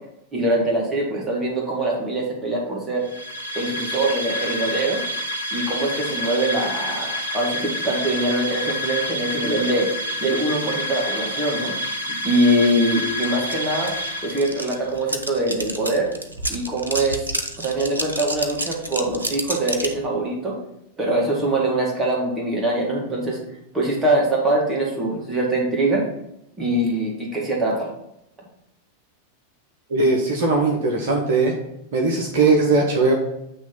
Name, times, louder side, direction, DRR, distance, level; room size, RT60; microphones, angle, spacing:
voice 1, 0.3-3.0 3.5-5.0 5.5-9.9 10.2-11.7 12.1-13.9 14.2-16.1 16.5-17.3 17.6-20.6 21.0-23.4 23.7-26.1 26.6-27.9, right 1 dB, 15° right, -3 dB, 2.0 m, -23 dB
sound 1, 3.0-14.8, equal, 85° left, 0.7 m, -28 dB
sound 2, 13.2-13.3 13.5-20.0, right 2 dB, 80° right, 0.6 m, -29 dB
voice 2, 29.9-31.5 31.9-33.1, right 3 dB, 55° right, 1 dB, 1.0 m, -19 dB
7.8 x 3.0 x 5.4 m, 0.80 s
figure-of-eight pair, 90°, 0 cm